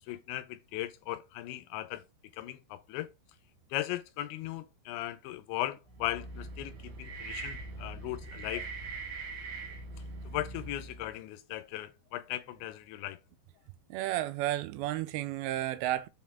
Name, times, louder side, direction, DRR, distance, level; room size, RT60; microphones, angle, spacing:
voice 1, 0.1-2.0 2.3-3.1 3.7-8.7 10.3-13.2, left 15 dB, 85° left, 3.0 m, -38 dB
sound 1, 5.9-11.2, right 3 dB, 65° right, 1.9 m, -42 dB
voice 2, 13.9-16.1, right 14 dB, 85° right, 2.7 m, -32 dB
7.7 x 4.3 x 3.5 m
omnidirectional pair, 5.2 m